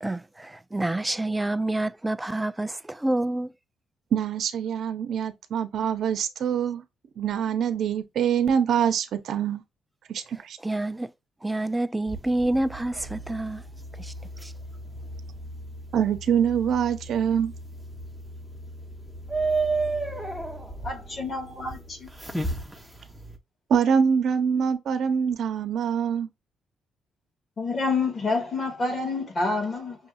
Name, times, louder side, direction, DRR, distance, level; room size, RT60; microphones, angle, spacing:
voice 1, 0.0-3.5 10.6-11.1 11.4-13.6 14.0-14.1 14.4-14.5, right 1 dB, 10° right, 0.3 m, -28 dB
voice 2, 4.1-6.8 7.2-9.6 10.1-10.6 15.9-17.5 23.7-26.3, right 7 dB, 70° right, 0.9 m, -24 dB
sound 1, 12.1-23.4, right 3 dB, 5° left, 1.0 m, -34 dB
voice 3, 20.8-22.1 27.6-30.0, left 3 dB, 40° left, 2.1 m, -28 dB
6.3 x 2.7 x 2.6 m
cardioid pair, 105°, 0 cm